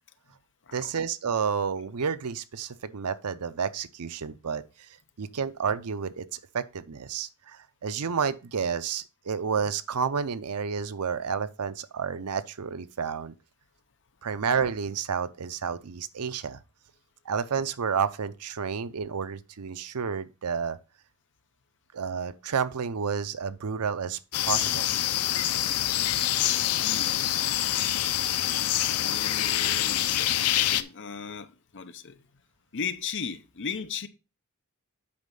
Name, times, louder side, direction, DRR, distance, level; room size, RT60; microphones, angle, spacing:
voice 1, 0.7-4.6 5.2-13.3 14.2-16.6 17.3-20.8 21.9-24.9, right 6 dB, 90° right, 0.6 m, -30 dB
sound 1, 24.3-30.8, left 12 dB, 85° left, 0.6 m, -26 dB
voice 2, 26.8-27.2 29.0-32.2 32.7-34.1, left 6 dB, 55° left, 0.8 m, -37 dB
8.6 x 5.4 x 3.8 m
head